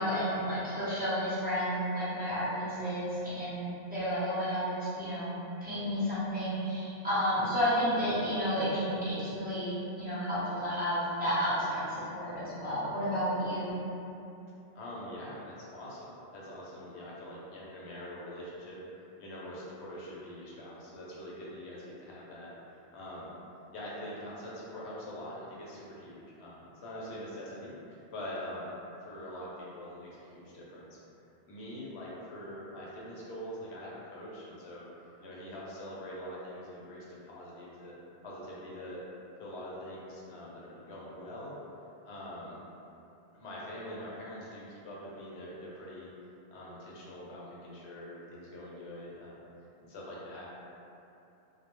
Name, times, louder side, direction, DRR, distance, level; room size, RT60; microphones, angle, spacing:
voice 1, 0.0-5.3 5.6-13.7, equal, 10° right, -12 dB, 0.7 m, -31 dB
voice 2, 14.7-23.3 23.7-31.0 31.5-34.8 35.2-37.9 38.2-39.0 39.4-41.6 42.0-42.6 43.3-46.1 46.5-49.4 49.8-50.5, left 1 dB, 85° left, -6 dB, 0.9 m, -44 dB
2.2 x 2.1 x 2.9 m, 2.8 s
omnidirectional pair, 1.1 m